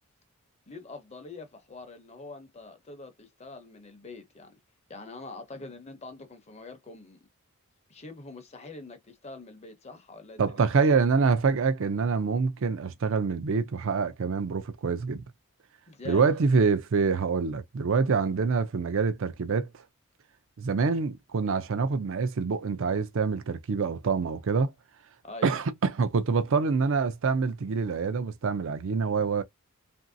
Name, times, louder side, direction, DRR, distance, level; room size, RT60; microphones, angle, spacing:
voice 1, 0.7-4.6 4.9-7.3 7.9-10.6 15.9-16.3 25.2-25.6, left 3 dB, 30° left, 0.7 m, -44 dB
voice 2, 10.4-15.2 16.1-19.7 20.6-24.7 25.4-29.4, right 5 dB, 60° right, 0.5 m, -26 dB
3.0 x 2.6 x 2.6 m
head